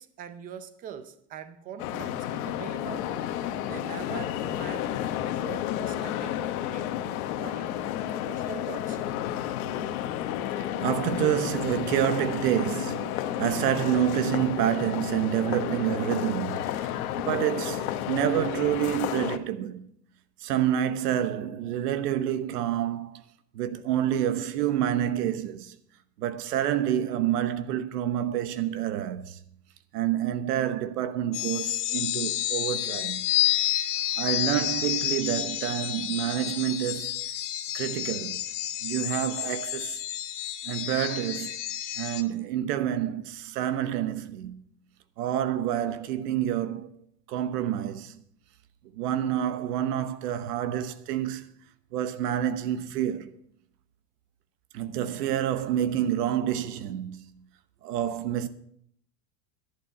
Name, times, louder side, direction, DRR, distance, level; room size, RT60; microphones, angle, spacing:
voice 1, 0.0-3.1 3.6-6.5 6.7-7.0 7.4-7.8 8.1-9.0, right 8 dB, 20° right, 0.5 m, -43 dB
sound 1, 1.8-19.4, left 11 dB, 65° left, 1.1 m, -31 dB
voice 2, 10.8-16.9 17.3-19.9 20.4-23.2 23.5-25.8 26.2-29.4 29.9-33.2 34.2-37.3 37.7-38.4 38.8-40.0 40.6-41.6 42.0-44.6 45.2-46.9 47.3-48.2 49.0-51.5 51.9-53.3 54.7-57.3 57.8-58.5, right 11 dB, 90° right, 1.2 m, -28 dB
sound 2, 31.3-42.2, left 13 dB, 30° left, 0.7 m, -30 dB
11.0 x 11.0 x 5.7 m
supercardioid pair, 170°, 46 cm